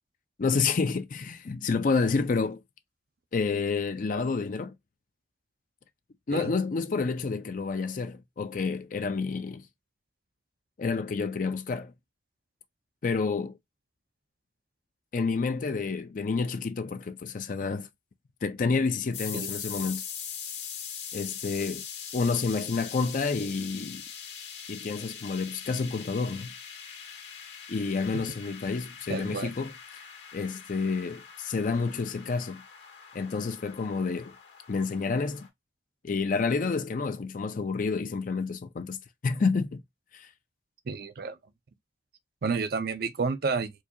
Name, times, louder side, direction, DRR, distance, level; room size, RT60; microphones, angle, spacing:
voice 1, 0.4-2.6 3.3-4.7 6.3-9.6 10.8-11.9 13.0-13.6 15.1-17.9 18.4-20.0 21.1-21.8 22.1-24.0 24.7-26.5 27.7-29.7 30.3-32.6 33.1-34.3 34.7-35.5 36.0-39.8 40.1-40.3, left 4 dB, 50° left, 0.4 m, -29 dB
sound 1, 19.1-35.5, left 7 dB, 80° left, 1.7 m, -42 dB
voice 2, 29.1-29.5 40.9-41.4 42.4-43.7, right 4 dB, 60° right, 0.5 m, -30 dB
4.5 x 2.3 x 2.7 m
head